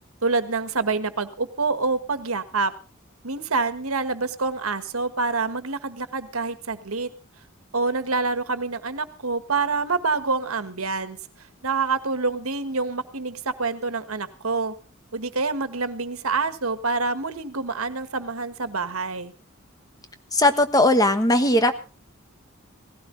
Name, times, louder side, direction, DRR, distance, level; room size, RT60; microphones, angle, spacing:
voice 1, 0.2-2.7 3.2-7.1 7.7-11.2 11.6-14.7 15.1-19.3, right 4 dB, 85° right, 11 dB, 1.6 m, -26 dB
voice 2, 20.3-21.7, left 1 dB, 15° left, 9 dB, 1.3 m, -18 dB
18.0 x 16.5 x 3.9 m, 0.36 s
head